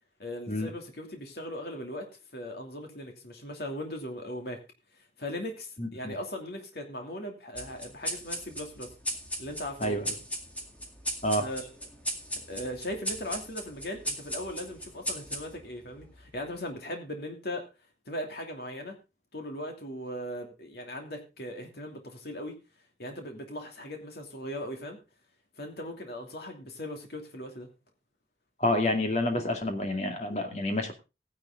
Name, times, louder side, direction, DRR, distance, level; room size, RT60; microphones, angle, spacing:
voice 1, 0.2-4.6 5.2-8.9 9.4-10.2 11.4-11.7 12.5-17.7 18.1-19.0 19.3-22.6 23.0-25.0 25.6-27.7, left 1 dB, 65° left, 3 dB, 2.7 m, -38 dB
voice 2, 5.8-6.2 9.8-10.1 11.2-11.5 28.6-30.9, left 1 dB, 40° left, 5 dB, 2.3 m, -28 dB
sound 1, 7.6-16.4, equal, 10° left, 2.0 m, -37 dB
15.0 x 10.5 x 3.8 m, 0.28 s
head